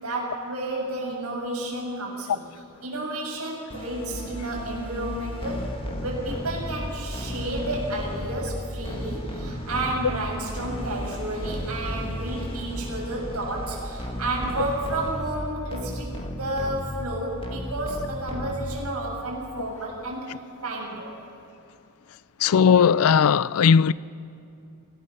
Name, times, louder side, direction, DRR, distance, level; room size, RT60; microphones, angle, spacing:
voice 1, 0.0-2.4 2.8-5.7 6.0-16.1 16.4-21.1, right 1 dB, 85° right, 7.4 m, -31 dB
sound 1, 3.7-19.1, equal, 25° left, 1.7 m, -34 dB
voice 2, 22.4-23.9, left 7 dB, 70° left, 0.4 m, -18 dB
25.0 x 18.0 x 6.6 m
head